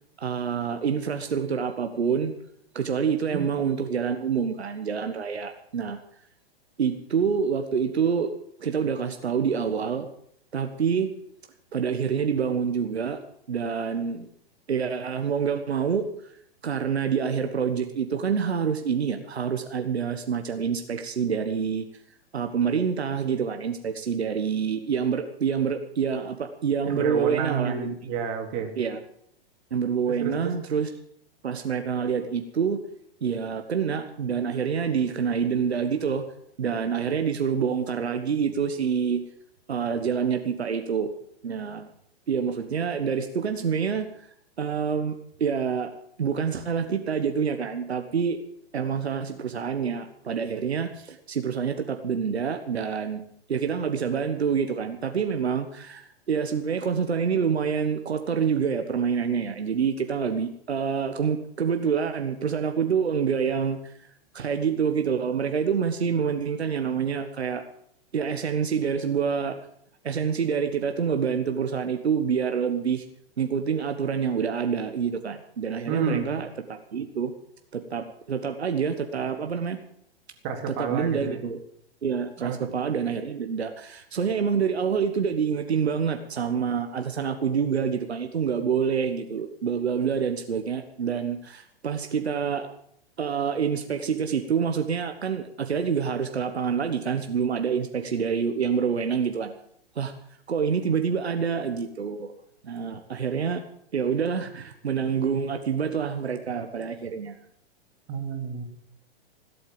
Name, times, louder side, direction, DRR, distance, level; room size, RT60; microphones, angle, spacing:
voice 1, 0.2-2.3 2.7-6.0 6.8-8.3 8.6-10.1 10.5-11.1 11.7-13.2 13.5-14.3 14.7-16.3 16.6-21.9 22.3-27.9 28.8-29.0 29.7-30.9 31.4-32.8 33.2-36.2 36.6-39.2 39.7-41.1 41.4-41.9 42.3-44.3 44.6-45.9 46.2-48.4 48.7-53.2 53.5-64.0 64.3-67.6 68.1-69.6 70.0-73.0 73.4-77.3 77.7-79.8 80.7-81.6 82.0-92.7 93.2-99.5 99.9-100.1 100.5-102.3 102.6-103.6 103.9-107.4, right 6 dB, 85° right, 7 dB, 1.3 m, -27 dB
voice 2, 26.9-28.8 30.1-30.5 75.9-76.3 80.4-81.4 82.4-82.6 108.1-108.6, right 6 dB, 40° right, 4 dB, 3.2 m, -30 dB
17.5 x 8.6 x 7.6 m, 0.69 s
hypercardioid pair, 120°, 32 cm